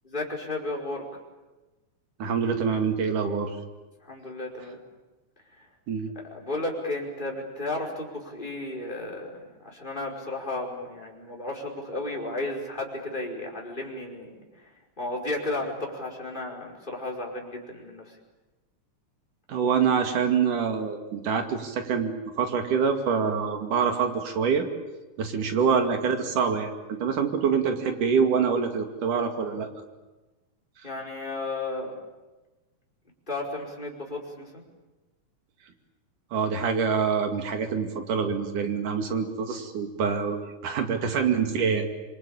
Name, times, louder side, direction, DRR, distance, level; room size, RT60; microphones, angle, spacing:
voice 1, 0.0-1.0 4.0-4.8 5.5-5.7 6.2-14.7 15.0-18.2 30.8-31.9 33.3-34.6, left 2 dB, 15° left, -1 dB, 5.1 m, -33 dB
voice 2, 2.2-3.5 5.9-6.1 19.5-24.7 25.2-29.7 36.3-42.0, right 6 dB, 85° right, 5 dB, 3.9 m, -25 dB
26.5 x 24.0 x 8.9 m, 1.1 s
omnidirectional pair, 3.5 m